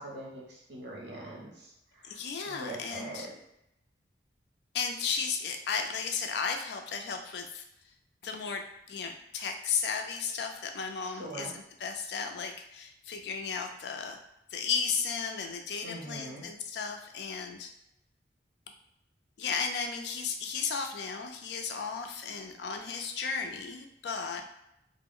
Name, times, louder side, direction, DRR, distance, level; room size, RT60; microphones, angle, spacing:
voice 1, 0.0-2.2 2.4-3.3 11.0-11.5 15.8-16.4, right 1 dB, 75° right, -3 dB, 0.9 m, -42 dB
voice 2, 2.0-3.3 4.7-7.6 8.2-14.2 14.5-17.7 19.4-24.4, left 5 dB, 70° left, 5 dB, 0.4 m, -34 dB
2.3 x 2.0 x 3.6 m, 0.82 s
head